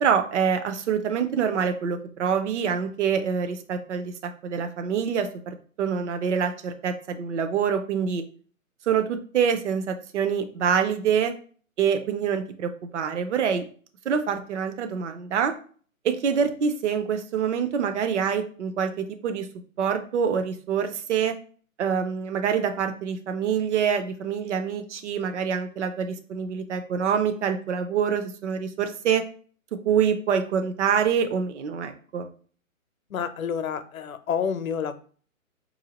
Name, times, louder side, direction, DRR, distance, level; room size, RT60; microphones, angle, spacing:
voice 1, 0.0-8.2 8.9-11.3 11.8-13.6 14.1-15.5 16.0-19.5 19.8-21.4 21.8-29.2 29.7-32.3, right 7 dB, 55° right, 7 dB, 0.7 m, -26 dB
voice 2, 33.1-35.0, left 7 dB, 75° left, 10 dB, 0.7 m, -29 dB
4.5 x 2.7 x 2.9 m, 0.43 s
hypercardioid pair, 150°, 42 cm